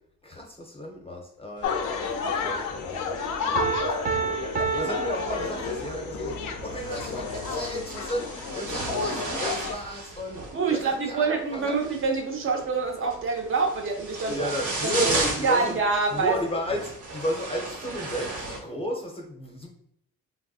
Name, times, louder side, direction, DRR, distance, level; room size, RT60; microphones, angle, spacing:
voice 1, 0.2-10.4 10.7-11.8 14.2-15.8 16.1-19.7, equal, 20° left, 0 dB, 0.6 m, -34 dB
sound 1, 1.6-9.7, left 5 dB, 80° left, 0.5 m, -31 dB
sound 2, 1.6-18.6, right 2 dB, 75° right, 1.0 m, -36 dB
Piano, 3.5-6.1, right 5 dB, 30° right, 0.3 m, -29 dB
voice 2, 10.5-14.5 14.8-15.1 15.4-16.4, right 4 dB, 45° right, 3 dB, 0.7 m, -26 dB
3.4 x 2.5 x 2.3 m, 0.72 s
cardioid pair, 90°, 30 cm